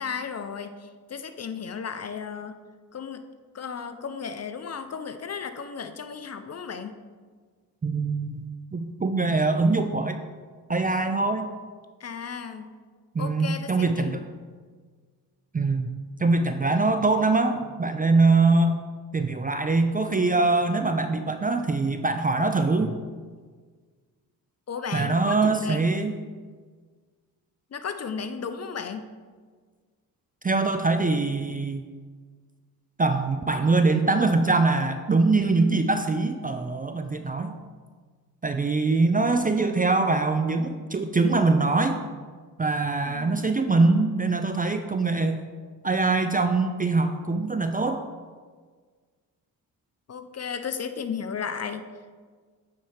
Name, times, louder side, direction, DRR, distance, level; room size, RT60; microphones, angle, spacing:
voice 1, 0.0-2.6 2.9-3.2 3.5-7.0 12.0-12.7 13.2-14.1 24.7-26.1 27.7-29.1 43.0-43.5 50.1-51.9, left 6 dB, 40° left, 9 dB, 0.6 m, -34 dB
voice 2, 7.8-10.2 10.7-11.5 13.1-14.2 15.5-15.9 16.2-18.8 19.1-23.0 24.9-26.1 30.4-31.8 33.0-37.5 38.4-42.0 42.6-45.4 45.8-48.0, right 3 dB, 20° right, 7 dB, 0.4 m, -23 dB
9.1 x 4.4 x 3.3 m, 1.5 s
supercardioid pair, 50°, 41 cm